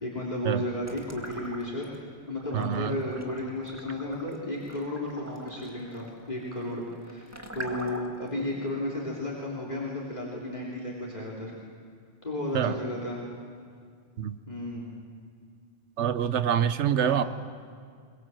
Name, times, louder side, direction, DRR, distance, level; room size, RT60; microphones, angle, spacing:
voice 1, 0.0-7.3 7.5-11.5 12.2-13.2 14.5-14.9 17.0-17.2, left 1 dB, 40° left, -3 dB, 3.3 m, -33 dB
sound 1, 0.8-2.0 2.4-8.3, right 1 dB, 15° right, 1.9 m, -43 dB
voice 2, 2.5-3.0 12.5-12.8 14.2-14.4 16.0-17.2, right 9 dB, 85° right, 12 dB, 1.1 m, -26 dB
22.5 x 21.5 x 7.6 m, 2.2 s
omnidirectional pair, 1.1 m